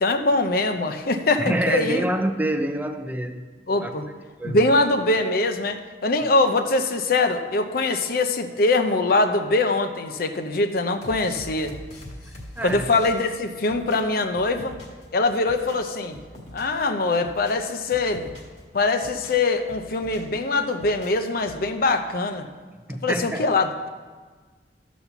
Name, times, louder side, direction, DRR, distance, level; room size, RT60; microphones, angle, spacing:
voice 1, 0.0-2.0 3.7-4.0 4.4-11.7 12.6-14.8 15.1-16.2 16.5-18.3 18.7-22.5 23.0-23.9, left 2 dB, 55° left, 7 dB, 0.6 m, -23 dB
voice 2, 1.4-3.4 3.8-3.9 4.4-4.6 12.6-12.9 22.9-23.5, right 1 dB, 10° right, 7 dB, 0.5 m, -26 dB
sound 1, 11.0-15.1 15.3-16.8 17.1-18.6 18.9-20.4 20.7-21.7, left 1 dB, 40° left, 1.6 m, -43 dB
12.5 x 4.2 x 7.0 m, 1.4 s
head